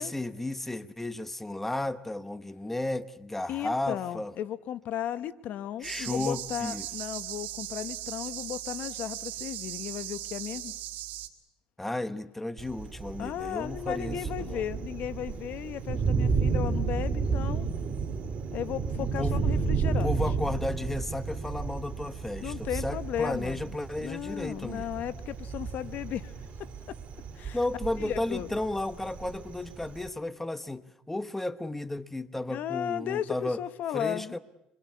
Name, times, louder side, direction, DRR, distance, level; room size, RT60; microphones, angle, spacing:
voice 1, 0.0-4.3 5.8-6.9 11.8-14.6 19.0-19.4 19.8-25.0 27.5-33.6 33.9-34.4, left 2 dB, 10° left, 13 dB, 1.0 m, -33 dB
voice 2, 3.5-10.7 13.2-17.7 18.5-20.2 22.4-23.7 24.0-26.3 26.6-27.0 27.3-27.6 28.0-28.5 32.5-34.4, left 11 dB, 65° left, 14 dB, 0.9 m, -35 dB
sound 1, 5.8-11.3, right 14 dB, 75° right, 2.7 m, -38 dB
Thunder, 12.6-30.1, right 5 dB, 45° right, 3.4 m, -32 dB
27.0 x 22.5 x 8.4 m, 0.91 s
cardioid pair, 110°, 3 cm